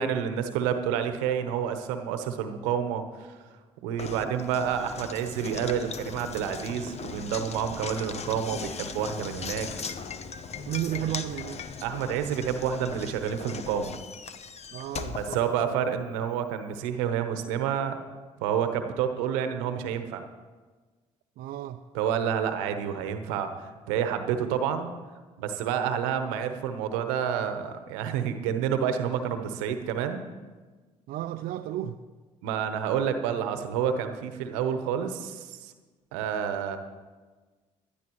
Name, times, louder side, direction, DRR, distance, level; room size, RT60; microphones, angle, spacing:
voice 1, 0.0-3.4 3.8-9.7 11.0-11.1 11.8-13.9 15.2-18.0 18.4-20.2 21.9-24.9 25.4-30.2 32.4-35.7 36.1-36.8, right 8 dB, 80° right, 8 dB, 1.0 m, -29 dB
Knock, 4.0-16.1, left 5 dB, 45° left, 0.8 m, -39 dB
voice 2, 4.0-4.4 10.6-11.6 14.7-15.8 21.4-21.8 25.9-26.0 31.1-32.0, right 12 dB, 65° right, 6 dB, 0.5 m, -34 dB
19.5 x 11.5 x 3.1 m, 1.3 s
hypercardioid pair, 50°, 16 cm